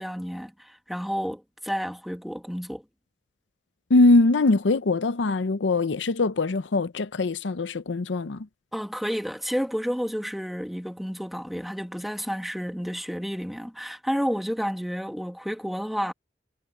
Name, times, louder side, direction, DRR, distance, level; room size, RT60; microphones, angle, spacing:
voice 1, 0.0-2.8 8.7-16.1, equal, ahead, 1.7 m, -31 dB
voice 2, 3.9-8.5, left 2 dB, 80° left, 0.6 m, -22 dB
head